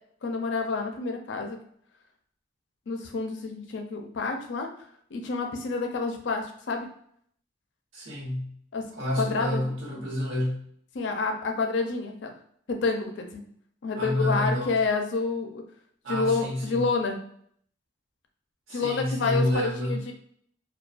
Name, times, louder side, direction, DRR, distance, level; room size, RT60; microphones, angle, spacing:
voice 1, 0.2-1.6 2.9-4.7 5.1-6.9 8.7-8.9 9.2-9.6 10.9-12.3 12.7-13.4 13.8-15.6 16.1-17.2 18.7-20.1, left 4 dB, 65° left, 4 dB, 0.4 m, -28 dB
voice 2, 7.9-8.5 8.9-10.6 13.9-14.8 16.0-16.8 18.7-20.0, left 1 dB, 80° right, -3 dB, 0.9 m, -29 dB
2.4 x 2.2 x 2.2 m, 0.64 s
head